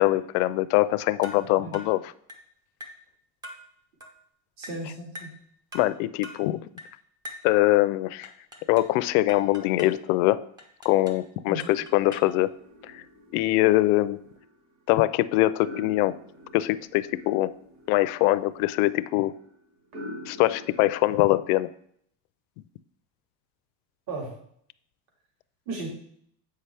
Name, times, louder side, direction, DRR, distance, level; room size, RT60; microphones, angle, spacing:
voice 1, 0.0-2.1 5.7-6.6 7.4-8.3 8.7-10.4 10.8-12.5 12.9-13.0 13.3-14.2 14.9-16.2 16.5-17.5 17.9-19.3 20.3-21.7, left 17 dB, 80° left, 16 dB, 0.5 m, -23 dB
sound 1, 1.2-1.5 1.7-2.0 2.3-2.5 2.8-3.0 3.4-3.7 4.0-4.2 4.6-4.9 5.2-5.4 5.7-6.0 6.2-6.5 6.8-7.0 7.2-7.5 8.2-9.0 9.3-10.0 10.6-11.3 11.6-12.4, left 1 dB, 10° right, 0.4 m, -44 dB
voice 2, 4.6-5.3 11.5-11.7 24.1-24.3 25.7-25.9, right 2 dB, 55° right, 0 dB, 2.3 m, -35 dB
sound 2, 11.6-21.2, left 1 dB, 35° right, 1.5 m, -46 dB
7.9 x 5.7 x 3.3 m, 0.66 s
cardioid pair, 175°, 44 cm